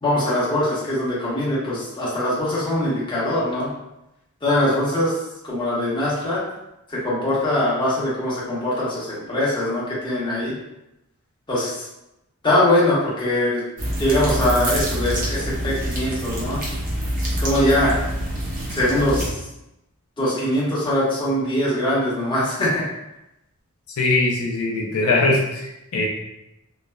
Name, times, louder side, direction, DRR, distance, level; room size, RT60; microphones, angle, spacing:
voice 1, 0.0-3.7 4.4-5.1 5.4-6.4 6.9-10.5 11.5-11.8 12.4-13.6 14.0-16.6 17.4-18.0 18.7-19.3 20.2-22.8, left 1 dB, 20° left, -8 dB, 0.9 m, -22 dB
sound 1, 13.8-19.3, equal, 40° right, 0.7 m, -26 dB
voice 2, 24.0-26.1, left 2 dB, 75° left, -1 dB, 0.4 m, -21 dB
3.1 x 2.1 x 2.2 m, 0.88 s
head